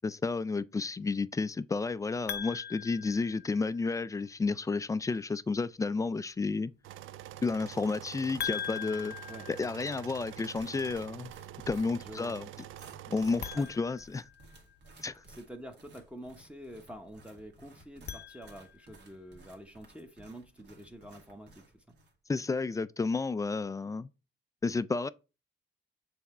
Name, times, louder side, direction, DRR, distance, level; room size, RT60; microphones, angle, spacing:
voice 1, 0.0-6.7 7.4-9.1 9.5-11.3 11.7-12.5 13.1-14.3 15.0-15.2 22.3-24.1 24.6-25.1, left 4 dB, 15° left, 0.3 m, -31 dB
sound 1, 2.3-4.0 8.4-10.4 13.3-14.9 17.8-19.0, left 9 dB, 55° left, 0.6 m, -41 dB
sound 2, 6.8-13.6, right 12 dB, 80° right, 0.4 m, -46 dB
sound 3, 10.3-22.2, right 2 dB, 60° right, 2.0 m, -57 dB
voice 2, 12.0-12.4 13.5-13.6 15.2-21.9, equal, 5° right, 0.9 m, -47 dB
7.1 x 3.5 x 4.2 m
cardioid pair, 90°, 20 cm